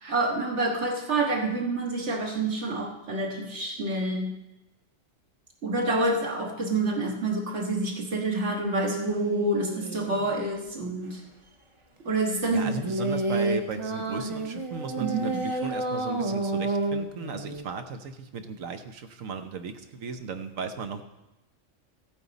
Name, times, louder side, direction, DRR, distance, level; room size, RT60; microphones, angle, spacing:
voice 1, 0.0-4.4 5.6-11.2 12.0-12.7 15.0-15.4, right 2 dB, 60° right, 1 dB, 1.8 m, -28 dB
sound 1, 8.6-10.3 12.6-17.6, right 2 dB, 30° right, 0.7 m, -30 dB
voice 2, 12.5-21.0, right 5 dB, 90° right, 8 dB, 1.3 m, -36 dB
14.0 x 8.9 x 4.1 m, 0.96 s
omnidirectional pair, 1.3 m